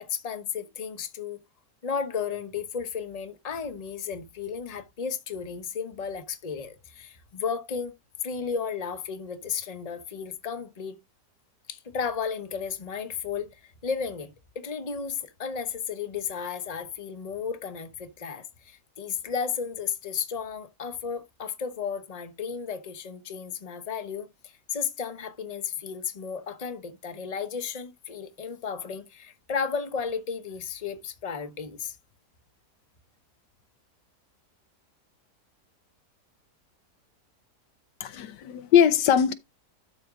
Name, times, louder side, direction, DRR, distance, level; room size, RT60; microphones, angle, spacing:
voice 1, 0.0-1.4 1.8-7.9 8.2-11.0 11.7-32.0, left 6 dB, 25° left, 1.0 m, -33 dB
voice 2, 38.0-39.3, left 8 dB, 80° left, 1.4 m, -21 dB
12.0 x 4.5 x 3.7 m
omnidirectional pair, 1.8 m